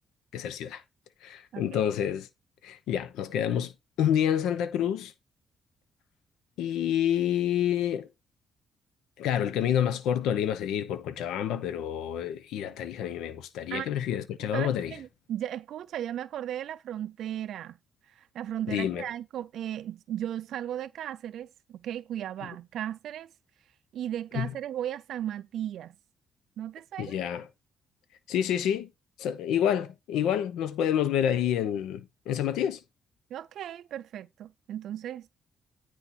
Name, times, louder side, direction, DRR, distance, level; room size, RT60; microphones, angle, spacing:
voice 1, 0.3-0.8 1.2-2.3 2.6-3.7 4.0-5.1 6.6-8.1 9.2-14.9 18.7-19.0 24.3-24.5 27.0-27.4 28.3-28.9 29.2-32.8, left 10 dB, 90° left, 0.8 m, -28 dB
voice 2, 1.5-1.8 13.7-13.9 14.5-17.8 18.0-23.3 23.9-25.9 26.6-27.2 33.3-35.3, right 11 dB, 75° right, 0.4 m, -36 dB
9.8 x 4.4 x 4.3 m
cardioid pair, 90°, 0 cm